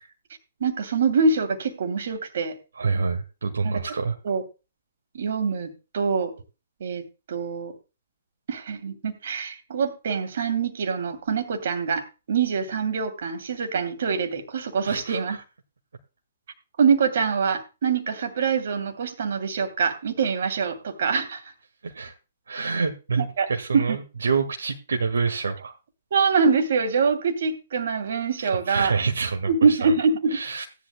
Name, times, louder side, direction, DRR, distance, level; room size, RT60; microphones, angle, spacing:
voice 1, 0.6-2.5 3.6-3.8 4.2-4.4 5.1-6.3 6.8-7.7 8.5-15.4 16.8-21.4 23.2-23.5 23.7-24.0 26.1-28.9 29.5-30.4, right 5 dB, 60° right, 7 dB, 2.8 m, -24 dB
voice 2, 2.8-4.1 14.9-15.4 21.8-22.1 22.5-25.7 28.4-29.9 30.3-30.6, right 4 dB, 75° right, 4 dB, 1.7 m, -27 dB
17.5 x 11.0 x 2.2 m, 0.30 s
figure-of-eight pair, 125°, 0 cm